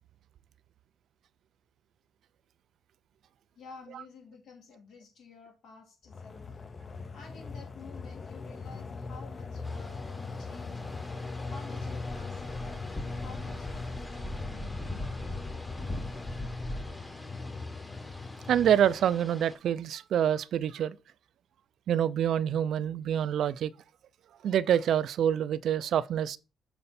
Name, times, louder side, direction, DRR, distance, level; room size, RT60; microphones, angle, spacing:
voice 1, 3.5-6.5 7.1-11.0 11.4-14.9, left 5 dB, 75° left, 2.6 m, -51 dB
sound 1, 6.1-19.1, left 3 dB, 35° left, 0.6 m, -40 dB
georgia visitorcenter, 9.6-19.6, left 1 dB, 15° left, 1.1 m, -41 dB
voice 2, 18.5-21.0 21.9-23.7 24.4-26.4, right 10 dB, 70° right, 0.4 m, -26 dB
6.9 x 4.3 x 4.1 m
cardioid pair, 90°, 0 cm